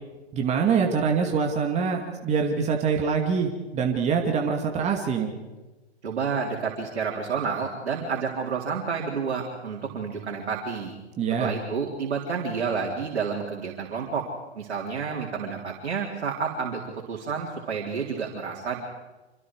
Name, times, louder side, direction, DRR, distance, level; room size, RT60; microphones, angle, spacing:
voice 1, 0.3-5.3 11.2-11.5, right 6 dB, 20° right, 2 dB, 2.4 m, -24 dB
voice 2, 6.0-10.9 11.4-14.3 14.6-18.8, right 5 dB, 75° right, -3 dB, 4.0 m, -30 dB
27.0 x 26.0 x 4.9 m, 1.1 s
hypercardioid pair, 125°, 33 cm